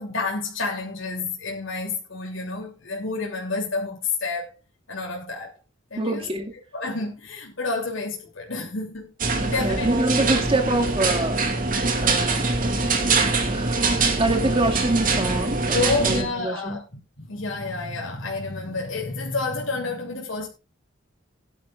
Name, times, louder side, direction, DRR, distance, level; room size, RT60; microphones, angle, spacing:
voice 1, 0.0-4.6 4.9-5.5 5.9-6.2 6.7-9.1 9.4-9.9 15.2-15.3 15.7-20.5, left 3 dB, 75° left, 3.2 m, -29 dB
voice 2, 6.0-6.5 9.4-11.4 12.0-12.4 13.5-16.8, right 2 dB, 30° right, 2.1 m, -26 dB
sound 1, 9.2-16.2, right 3 dB, 45° right, 2.5 m, -23 dB
18.0 x 11.0 x 2.5 m
head